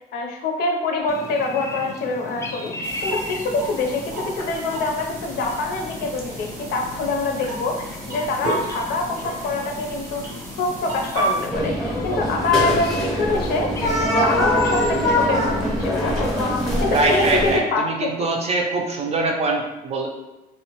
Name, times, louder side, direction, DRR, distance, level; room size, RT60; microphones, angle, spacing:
voice 1, 0.1-10.3 10.6-18.3, left 3 dB, 70° left, 2 dB, 0.5 m, -25 dB
sound 1, 1.1-15.9, left 2 dB, 15° left, 0.3 m, -36 dB
sound 2, 2.8-11.5, right 2 dB, 85° right, 1.0 m, -32 dB
sound 3, 11.5-17.6, equal, ahead, 0.7 m, -22 dB
voice 2, 16.9-20.1, right 2 dB, 40° right, 1 dB, 0.5 m, -23 dB
2.6 x 2.2 x 2.9 m, 1.0 s
cardioid pair, 110°, 17 cm